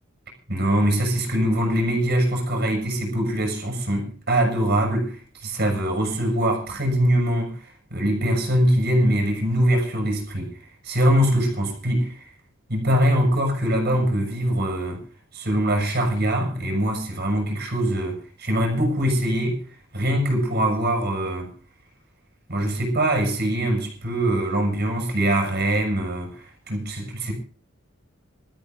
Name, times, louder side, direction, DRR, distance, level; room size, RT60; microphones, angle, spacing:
voice 1, 0.5-7.6 7.9-10.6 10.8-12.3 12.7-15.0 15.3-19.6 19.9-21.5 22.5-27.3, right 1 dB, 50° right, 6.2 m, -23 dB
26.0 x 13.5 x 2.6 m
head